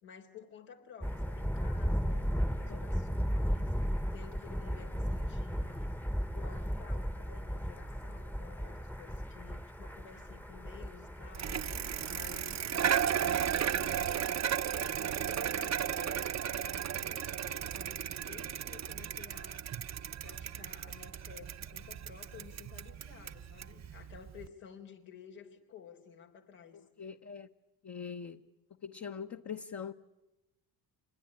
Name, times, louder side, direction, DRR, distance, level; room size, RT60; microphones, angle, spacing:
voice 1, 0.0-5.9 6.3-11.7 12.1-14.4 14.7-19.7 20.1-26.8, left 7 dB, 85° left, 4.1 m, -53 dB
Thunder, 1.0-13.5, equal, 5° left, 1.0 m, -36 dB
Bicycle, 11.3-24.5, right 9 dB, 35° right, 0.9 m, -35 dB
voice 2, 26.7-27.5 27.8-28.5 28.8-29.9, left 6 dB, 35° left, 1.1 m, -42 dB
26.5 x 21.0 x 10.0 m
supercardioid pair, 75°, 46 cm